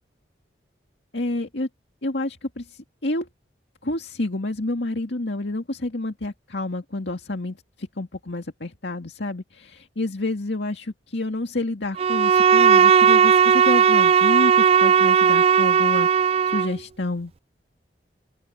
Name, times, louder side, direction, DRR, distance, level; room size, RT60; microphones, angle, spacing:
voice 1, 1.1-1.7 2.0-3.3 3.8-16.1 16.4-17.3, left 2 dB, 75° left, 2.1 m, -29 dB
Bowed string instrument, 12.0-16.8, right 7 dB, 35° right, 0.3 m, -16 dB
open air
head